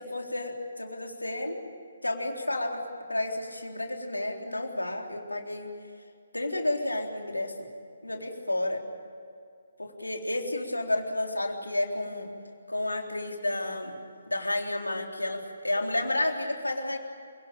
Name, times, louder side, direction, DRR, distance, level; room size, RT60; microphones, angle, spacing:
voice 1, 0.1-1.6 2.0-2.8 3.1-5.7 6.3-7.5 8.0-8.8 9.8-12.3 12.7-14.0 14.3-17.0, left 1 dB, 85° left, 2 dB, 3.8 m, -31 dB
28.5 x 18.5 x 8.9 m, 2.4 s
figure-of-eight pair, 140°, 0 cm